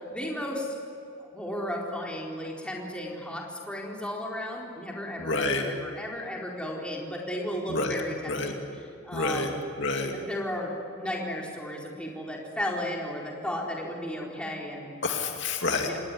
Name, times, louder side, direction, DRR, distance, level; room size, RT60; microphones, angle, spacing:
voice 1, 0.1-0.7 1.2-9.6 10.1-14.9 15.9-16.0, equal, 5° left, -2 dB, 4.1 m, -34 dB
voice 2, 5.2-5.6 7.7-7.9 8.3-8.5 9.1-9.5 9.8-10.1 15.0-15.9, left 3 dB, 55° left, 2 dB, 2.5 m, -28 dB
27.5 x 20.5 x 10.0 m, 2.8 s
head